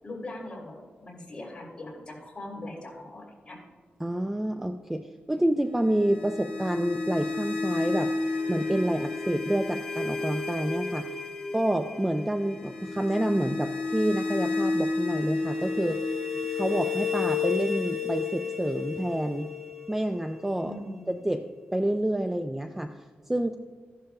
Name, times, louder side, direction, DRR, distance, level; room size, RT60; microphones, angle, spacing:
voice 1, 0.0-3.6 20.7-21.1, left 1 dB, 25° left, -4 dB, 3.0 m, -41 dB
voice 2, 4.0-8.1 8.5-11.1 11.5-16.0 16.5-19.5 19.9-20.7 21.2-22.9 23.3-23.6, right 1 dB, 10° right, 6 dB, 0.3 m, -28 dB
sound 1, 5.8-20.8, left 4 dB, 5° left, 2.7 m, -31 dB
14.5 x 11.5 x 2.3 m, 1.5 s
wide cardioid pair, 150°, 4 cm